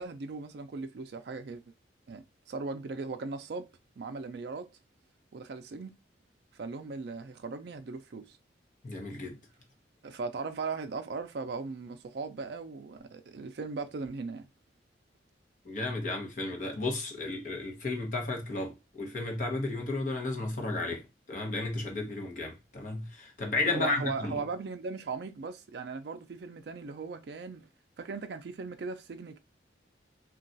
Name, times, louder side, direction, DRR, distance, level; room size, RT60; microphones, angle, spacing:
voice 1, 0.0-1.6 2.1-3.7 4.0-4.7 5.3-5.9 6.6-8.4 10.0-14.5 23.7-27.7 28.0-29.4, right 4 dB, 65° right, 0.4 m, -38 dB
voice 2, 8.8-9.4 15.6-21.0 21.3-24.4, left 2 dB, 45° left, 0.8 m, -33 dB
2.3 x 2.3 x 3.8 m
head